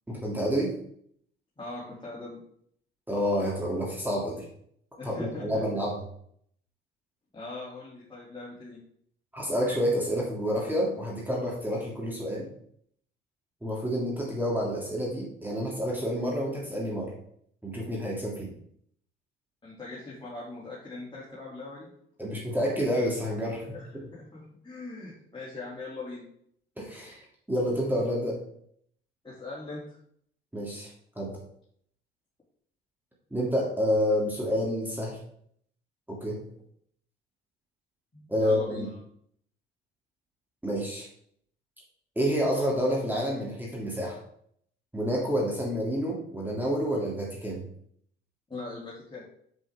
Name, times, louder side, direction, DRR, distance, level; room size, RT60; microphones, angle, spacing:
voice 1, 0.1-0.7 3.1-4.4 5.0-6.0 9.3-12.5 13.6-17.1 17.6-18.5 22.2-24.1 26.8-27.2 27.5-28.4 30.5-30.9 31.2-31.3 33.3-35.2 36.1-36.4 38.3-38.9 40.6-41.1 42.2-44.2 44.9-47.6, equal, 5° right, -4 dB, 2.8 m, -29 dB
voice 2, 1.6-2.4 5.0-5.6 7.3-8.8 19.6-21.9 23.7-26.2 29.2-30.0 38.1-39.0 48.5-49.2, left 2 dB, 15° left, -7 dB, 3.0 m, -41 dB
7.6 x 7.5 x 3.6 m, 0.66 s
figure-of-eight pair, 50°, 30 cm